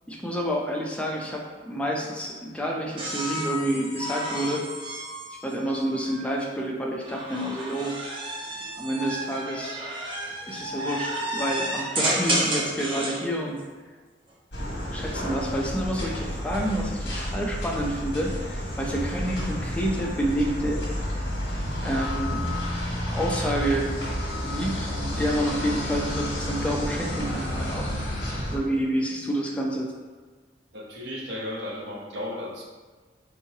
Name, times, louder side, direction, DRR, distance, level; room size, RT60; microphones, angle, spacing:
voice 1, 0.1-4.6 5.4-8.0 8.8-9.8 10.5-13.6 14.9-20.8 21.8-22.5 23.1-23.9 24.4-29.9, equal, 5° left, -1 dB, 0.4 m, -29 dB
sound 1, 3.0-6.2 7.0-13.2 14.7-15.2, right 1 dB, 30° right, 0.6 m, -31 dB
sound 2, 14.5-28.6, equal, 65° left, 1.3 m, -30 dB
voice 2, 30.7-32.6, left 1 dB, 80° right, -2 dB, 0.8 m, -34 dB
4.4 x 3.1 x 2.7 m, 1.4 s
head